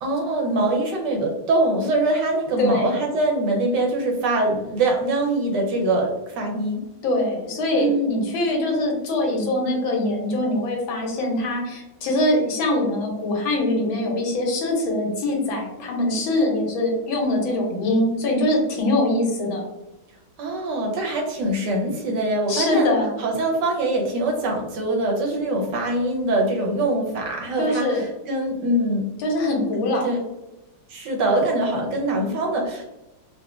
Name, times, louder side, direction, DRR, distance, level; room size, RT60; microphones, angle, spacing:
voice 1, 0.0-6.9 7.7-8.2 20.4-22.9 23.2-29.1 30.0-30.2 30.9-32.8, right 2 dB, 70° right, 1 dB, 1.2 m, -23 dB
voice 2, 2.6-3.0 7.0-19.7 22.5-23.1 27.6-28.0 29.2-30.1, left 1 dB, 85° left, 0 dB, 1.6 m, -23 dB
3.8 x 2.4 x 2.3 m, 1.0 s
omnidirectional pair, 2.2 m